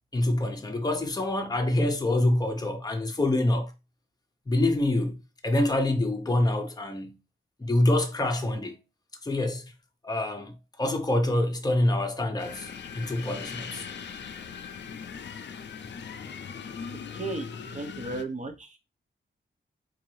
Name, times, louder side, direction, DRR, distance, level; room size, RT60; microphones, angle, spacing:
voice 1, 0.1-3.7 4.5-7.2 7.6-8.8 9.2-9.6 10.0-13.9, left 1 dB, 20° left, 0.6 m, -26 dB
sound 1, 12.4-18.2, left 6 dB, 60° left, 0.4 m, -40 dB
voice 2, 16.9-18.8, right 3 dB, 35° right, 0.8 m, -36 dB
4.1 x 2.6 x 3.1 m
wide cardioid pair, 135°, 21 cm